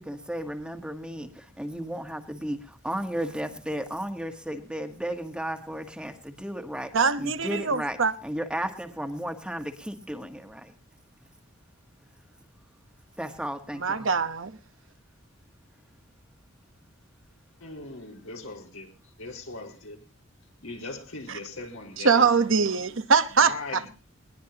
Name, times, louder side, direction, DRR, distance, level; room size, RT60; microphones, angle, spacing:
voice 1, 0.0-10.7 13.2-14.1, equal, 5° right, 1.5 m, -34 dB
voice 2, 6.9-8.1 13.8-14.6 21.3-21.4 22.0-23.9, right 5 dB, 65° right, 1.1 m, -23 dB
voice 3, 17.6-18.9 19.2-20.0 20.6-22.8 23.4-23.9, left 3 dB, 80° left, 4.8 m, -39 dB
20.5 x 20.0 x 3.0 m
head